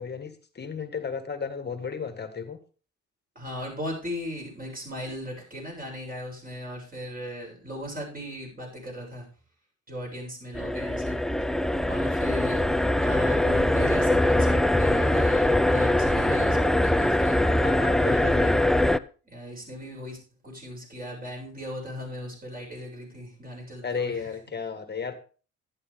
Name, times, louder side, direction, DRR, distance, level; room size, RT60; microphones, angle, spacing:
voice 1, 0.0-2.6 17.6-18.6 23.8-25.2, left 6 dB, 35° left, 9 dB, 1.7 m, -34 dB
voice 2, 3.4-9.3 9.9-11.2 11.9-12.6 13.0-17.5 18.0-18.7 19.2-20.2 20.4-24.3, equal, 30° right, -1 dB, 7.3 m, -37 dB
sound 1, 10.5-19.0, left 1 dB, ahead, 0.4 m, -22 dB
11.0 x 11.0 x 3.6 m, 0.38 s
cardioid pair, 90°, 30 cm